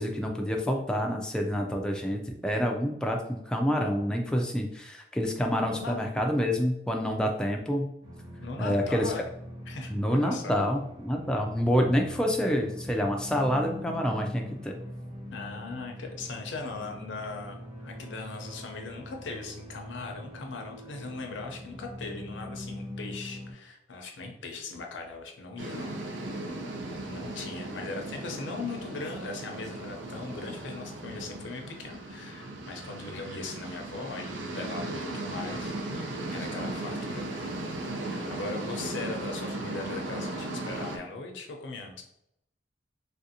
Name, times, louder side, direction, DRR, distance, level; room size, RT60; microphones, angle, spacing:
voice 1, 0.0-7.9 8.6-9.1 9.9-14.7, equal, 5° left, 1 dB, 0.3 m, -27 dB
voice 2, 5.7-6.0 8.4-9.3 9.7-10.6 15.3-25.9 27.0-37.5 38.1-42.0, left 3 dB, 85° left, 3 dB, 0.6 m, -39 dB
sound 1, 8.0-23.5, left 1 dB, 20° right, 0.8 m, -42 dB
sound 2, 25.6-41.0, right 2 dB, 80° right, 0.5 m, -37 dB
3.3 x 2.5 x 2.7 m, 0.77 s
head